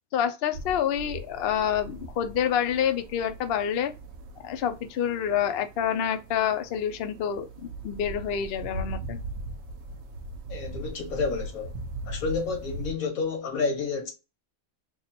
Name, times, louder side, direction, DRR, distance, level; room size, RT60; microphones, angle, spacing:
voice 1, 0.1-3.9 4.4-9.2, left 9 dB, 60° left, 0.7 m, -27 dB
sound 1, 0.5-12.9, right 2 dB, 80° right, 1.2 m, -40 dB
voice 2, 10.5-11.7 12.1-14.1, left 4 dB, 85° left, 1.6 m, -30 dB
3.6 x 2.3 x 4.1 m
omnidirectional pair, 1.5 m